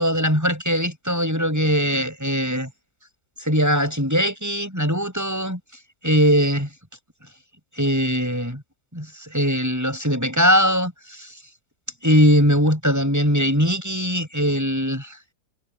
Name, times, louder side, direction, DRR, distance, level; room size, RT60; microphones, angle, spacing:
voice 1, 0.0-2.7 3.4-5.6 6.0-6.7 7.8-8.6 8.9-10.9 12.0-15.2, equal, 10° right, 7.9 m, -20 dB
omnidirectional pair, 1.8 m